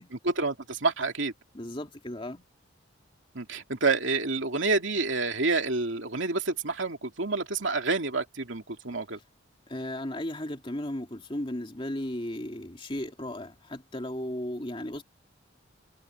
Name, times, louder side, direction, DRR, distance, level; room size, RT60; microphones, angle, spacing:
voice 1, 0.2-1.3 3.3-9.2, right 3 dB, 70° right, 2.6 m, -28 dB
voice 2, 1.5-2.4 9.7-15.0, left 1 dB, 25° left, 2.6 m, -35 dB
head